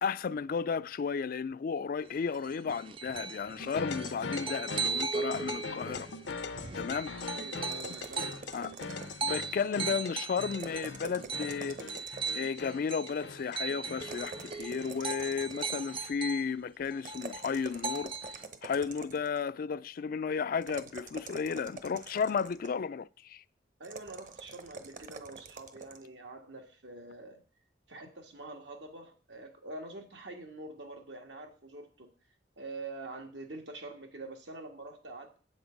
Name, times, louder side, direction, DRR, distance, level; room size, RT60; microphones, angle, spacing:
voice 1, 0.0-6.1 6.7-7.1 8.5-8.7 9.2-18.1 18.6-23.4, left 6 dB, 50° left, 0.3 m, -33 dB
sound 1, 2.1-16.5 16.8-18.4, right 4 dB, 30° right, 0.5 m, -38 dB
sound 2, 3.6-16.3, left 4 dB, 80° left, 0.7 m, -42 dB
voice 2, 7.2-8.4 23.8-27.4 27.9-32.1 32.6-35.4, right 2 dB, 85° right, 1.9 m, -45 dB
sound 3, 7.6-9.4 10.5-12.5 14.0-16.0 17.0-19.4 20.6-22.8 23.8-26.0, right 4 dB, 45° right, 1.0 m, -46 dB
8.6 x 7.8 x 5.2 m
head